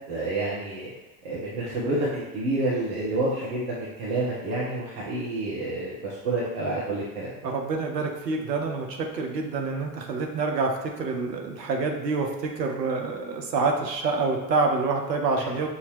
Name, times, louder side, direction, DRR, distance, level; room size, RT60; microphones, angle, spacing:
voice 1, 0.1-0.9 1.2-7.3, right 2 dB, 70° right, -6 dB, 1.2 m, -29 dB
voice 2, 7.4-15.7, right 4 dB, 85° right, 2 dB, 0.8 m, -27 dB
6.0 x 2.8 x 3.1 m, 1.1 s
figure-of-eight pair, 65°, 48 cm